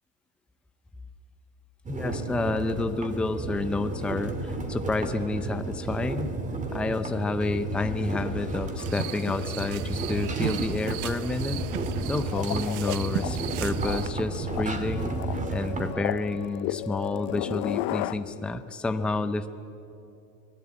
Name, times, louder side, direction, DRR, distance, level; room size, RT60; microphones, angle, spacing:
sound 1, 1.8-15.9, right 2 dB, 15° right, 2.3 m, -32 dB
voice 1, 1.9-6.3 6.7-11.6 12.0-15.2 15.5-19.5, left 3 dB, ahead, 9 dB, 0.6 m, -29 dB
sound 2, 8.8-14.1, right 12 dB, 70° right, 1.2 m, -36 dB
sound 3, 12.3-13.4 13.7-18.1, left 15 dB, 45° left, 0.9 m, -33 dB
26.5 x 19.0 x 8.8 m, 2.7 s
supercardioid pair, 140°, 44 cm